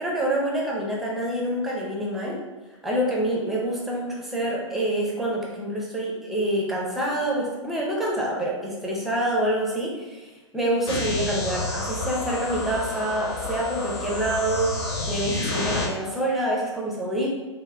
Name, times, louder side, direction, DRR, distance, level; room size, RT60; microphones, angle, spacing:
voice 1, 0.0-2.4 2.8-14.7 15.1-17.3, right 1 dB, ahead, -3 dB, 0.5 m, -26 dB
sound 1, 10.9-15.9, left 2 dB, 50° left, 0.7 m, -29 dB
3.6 x 2.1 x 3.3 m, 1.2 s
figure-of-eight pair, 110°, 17 cm